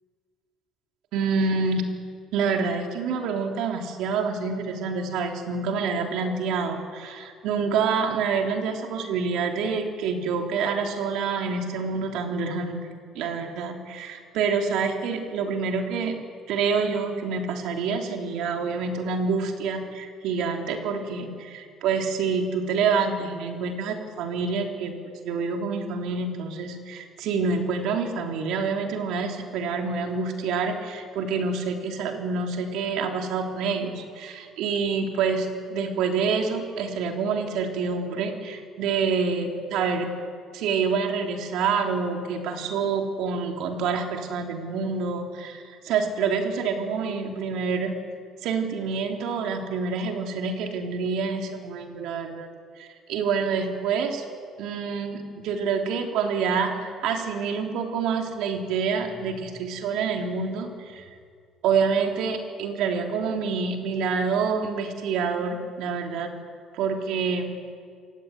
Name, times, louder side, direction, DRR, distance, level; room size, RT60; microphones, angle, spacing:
voice 1, 1.1-1.9 2.3-16.1 16.5-40.1 40.5-48.0 48.4-52.5 52.8-54.2 54.6-61.1 61.6-66.4 66.7-67.6, right 5 dB, 70° right, 3 dB, 3.5 m, -27 dB
27.0 x 16.0 x 9.5 m, 2.1 s
cardioid pair, 170°, 0 cm